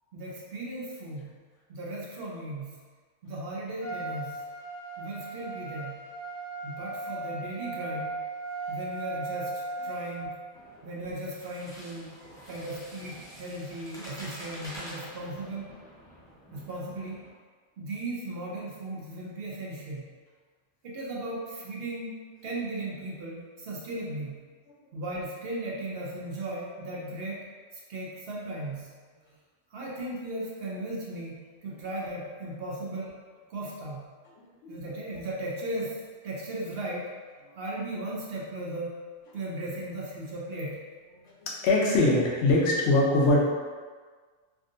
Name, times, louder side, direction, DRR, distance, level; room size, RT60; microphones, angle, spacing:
voice 1, 0.1-1.3 1.7-2.7 3.2-4.4 5.0-6.0 6.6-8.1 8.7-10.3 10.8-12.1 12.5-15.7 16.5-17.2 17.8-20.0 20.8-24.4 24.9-27.4 27.9-28.9 29.7-33.1 33.5-34.0 34.7-37.1 37.6-38.9 39.3-40.8, right 1 dB, 60° right, -4 dB, 0.7 m, -36 dB
Trumpet, 3.8-10.3, right 3 dB, 25° right, 1.2 m, -37 dB
sound 1, 10.5-17.3, equal, 5° left, 0.5 m, -47 dB
voice 2, 34.4-34.8 41.4-43.4, left 2 dB, 70° left, -3 dB, 0.8 m, -23 dB
3.5 x 2.5 x 2.5 m, 1.5 s
omnidirectional pair, 1.2 m